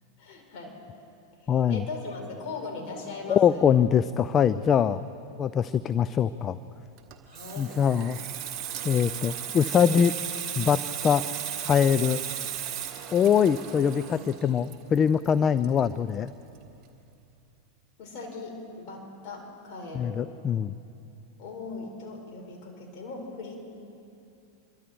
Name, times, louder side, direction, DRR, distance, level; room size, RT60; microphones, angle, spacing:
voice 1, 0.2-0.7 1.4-3.8 7.2-7.7 18.0-20.1 21.4-23.6, left 3 dB, 40° left, 0 dB, 5.6 m, -39 dB
voice 2, 1.5-1.8 3.3-5.0 5.4-6.6 7.6-8.2 8.8-10.1 10.6-11.2 11.6-12.2 13.1-16.3 19.9-20.7, left 8 dB, 25° left, 14 dB, 0.5 m, -23 dB
Water tap faucet / Sink (filling or washing), 7.0-16.3 16.6-16.8, right 9 dB, 30° right, 1.7 m, -36 dB
26.0 x 23.5 x 4.7 m, 2.7 s
figure-of-eight pair, 90°, 0 cm